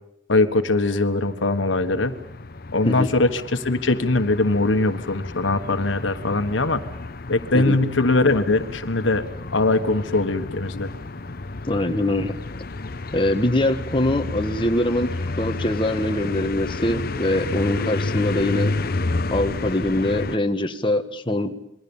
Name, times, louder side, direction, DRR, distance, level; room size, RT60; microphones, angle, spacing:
voice 1, 0.3-2.2 2.7-6.8 7.3-9.2 9.5-10.9, left 2 dB, 85° left, 9 dB, 1.5 m, -21 dB
sound 1, 0.9-20.4, left 2 dB, 50° left, 0.9 m, -31 dB
voice 2, 11.7-12.4 13.1-18.7 19.3-21.5, left 1 dB, 25° left, 7 dB, 1.5 m, -23 dB
27.5 x 22.0 x 7.2 m, 0.79 s
head